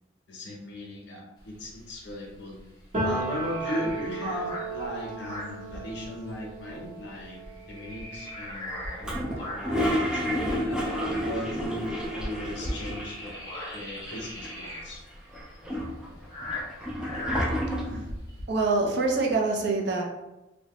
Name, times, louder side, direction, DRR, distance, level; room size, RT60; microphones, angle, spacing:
voice 1, 0.3-2.6 3.0-7.4 7.7-10.8 11.2-13.3 13.7-15.0, left 1 dB, 60° left, -1 dB, 0.7 m, -37 dB
sound 1, 1.4-6.4 6.6-6.8 7.2-9.8 10.3-18.5, left 1 dB, 20° left, 0.7 m, -39 dB
Piano, 2.9-10.6 10.9-12.5, right 2 dB, 35° right, 0.9 m, -37 dB
Toilet flush, 9.0-13.4 13.7-13.8 14.0-14.8 15.3-18.1, equal, 5° right, 0.3 m, -30 dB
voice 2, 18.5-20.0, right 3 dB, 60° right, 1 dB, 0.5 m, -25 dB
2.8 x 2.1 x 2.9 m, 0.95 s
head